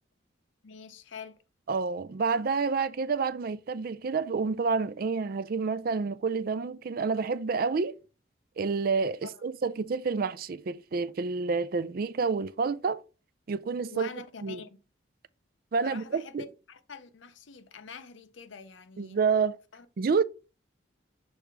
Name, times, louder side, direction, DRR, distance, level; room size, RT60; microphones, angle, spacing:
voice 1, 0.6-1.4 9.2-9.3 13.9-14.8 15.8-19.2 19.7-19.8, left 5 dB, 70° left, 0.7 m, -45 dB
voice 2, 1.7-8.0 8.6-13.0 13.5-14.1 14.4-14.6 15.7-16.5 19.0-19.6 20.0-20.2, right 5 dB, 50° right, 0.4 m, -29 dB
6.5 x 3.4 x 4.6 m
head